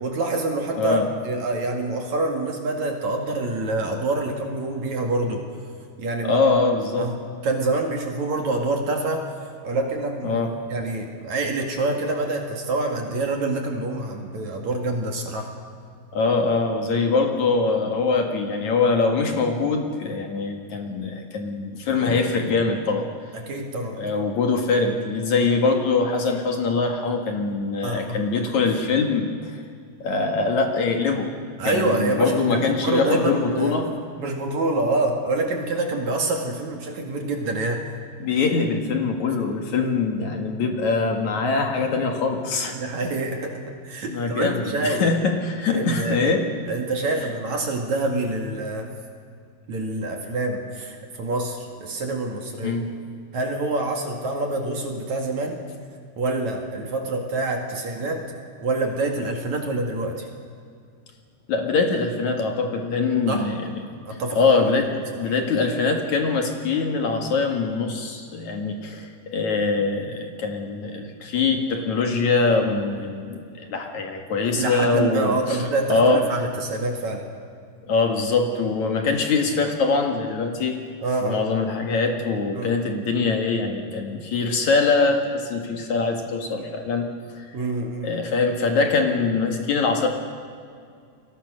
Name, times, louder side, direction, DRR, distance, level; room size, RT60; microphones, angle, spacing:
voice 1, 0.0-5.4 6.0-6.4 7.0-7.1 7.4-9.3 9.6-10.4 10.7-15.5 23.3-24.0 27.8-28.3 31.6-33.8 34.2-37.8 39.8-39.9 42.7-45.1 45.7-46.2 46.7-48.9 49.7-52.8 53.3-55.6 56.2-58.2 58.6-60.3 63.3-63.5 64.0-64.5 65.1-65.3 74.5-77.3 81.0-81.5 82.5-82.7 87.5-88.1, right 2 dB, 50° right, 3 dB, 3.0 m, -26 dB
voice 2, 6.2-7.1 10.2-10.6 16.1-23.1 24.0-29.6 30.0-31.3 31.6-33.9 38.2-42.8 44.1-46.5 52.6-52.9 61.5-63.8 64.4-76.2 77.9-80.8 81.2-87.1 87.4-87.5 88.0-90.1, left 4 dB, 55° left, 4 dB, 2.7 m, -23 dB
29.5 x 22.5 x 6.5 m, 2.3 s
omnidirectional pair, 4.7 m